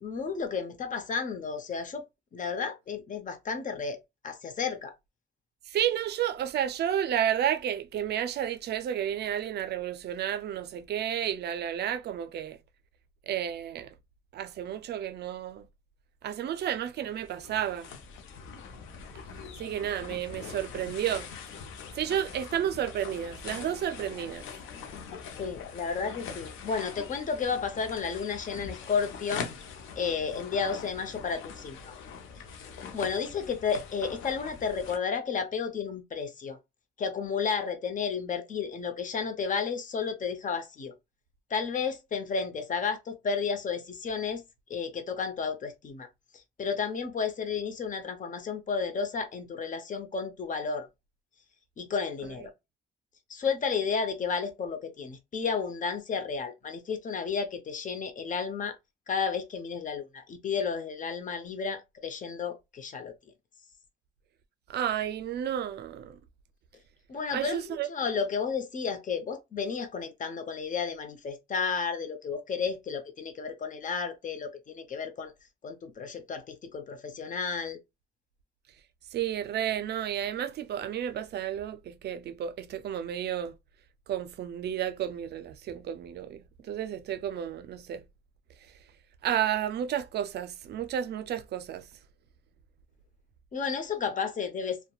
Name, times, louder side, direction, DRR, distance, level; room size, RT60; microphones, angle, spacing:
voice 1, 0.0-2.0 2.3-4.0 4.2-4.9 25.4-29.5 30.0-31.9 32.9-36.6 37.0-40.9 41.5-44.4 44.7-46.1 46.3-50.9 51.8-52.5 53.3-58.7 59.1-63.1 67.1-75.3 75.6-77.8 93.5-94.8, left 5 dB, 40° left, 0.7 m, -32 dB
voice 2, 5.7-12.6 13.3-13.9 14.3-15.7 16.2-17.9 19.6-21.3 21.9-24.4 64.7-66.2 67.3-67.9 79.1-83.5 84.1-88.0 89.2-91.9, right 10 dB, 55° right, 0.4 m, -31 dB
sound 1, 17.0-35.0, left 6 dB, 80° left, 0.6 m, -43 dB
2.7 x 2.1 x 2.3 m
cardioid pair, 90°, 20 cm